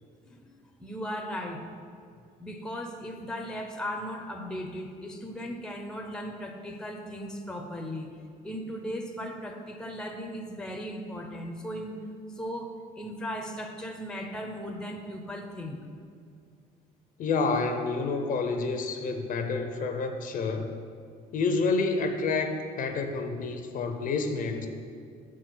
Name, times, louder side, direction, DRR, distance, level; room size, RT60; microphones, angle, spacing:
voice 1, 0.8-1.7 2.4-8.1 8.4-12.0 12.3-15.8, equal, 5° left, 3 dB, 0.7 m, -37 dB
voice 2, 17.2-20.7 21.3-24.7, left 4 dB, 55° left, 6 dB, 0.6 m, -29 dB
6.1 x 4.7 x 6.0 m, 2.3 s
cardioid pair, 110°, 17 cm